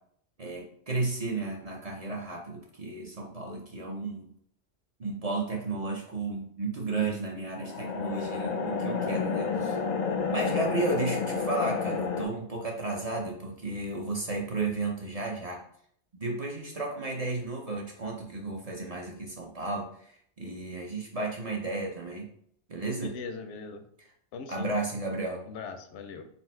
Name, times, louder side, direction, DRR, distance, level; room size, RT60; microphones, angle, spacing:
voice 1, 0.4-4.3 5.0-9.8 10.3-15.6 16.1-22.3 22.7-23.1 24.5-25.4, right 3 dB, 40° right, -1 dB, 0.6 m, -33 dB
sound 1, 7.6-12.3, left 5 dB, 60° left, 0.5 m, -30 dB
voice 2, 23.0-23.9 24.3-24.9 25.5-26.3, left 5 dB, 90° left, 7 dB, 0.9 m, -40 dB
4.1 x 2.1 x 4.3 m, 0.66 s
omnidirectional pair, 1.1 m